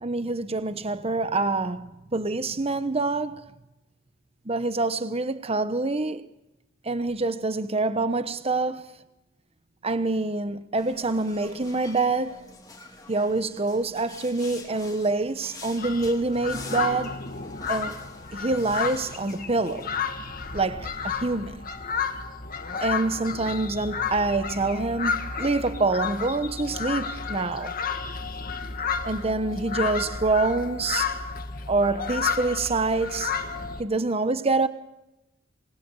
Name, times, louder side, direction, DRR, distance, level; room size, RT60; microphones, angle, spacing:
voice 1, 0.0-3.4 4.4-6.3 6.8-8.8 9.8-12.4 13.1-17.2 17.7-18.0 18.3-19.9 20.5-21.6 22.8-27.7 29.0-31.2 31.7-33.3 33.8-34.7, right 3 dB, 30° right, 1.0 m, -26 dB
sound 1, 10.8-19.9, left 3 dB, 20° left, 3.2 m, -46 dB
sound 2, 15.8-33.8, left 6 dB, 45° left, 1.8 m, -32 dB
27.5 x 21.5 x 7.2 m
head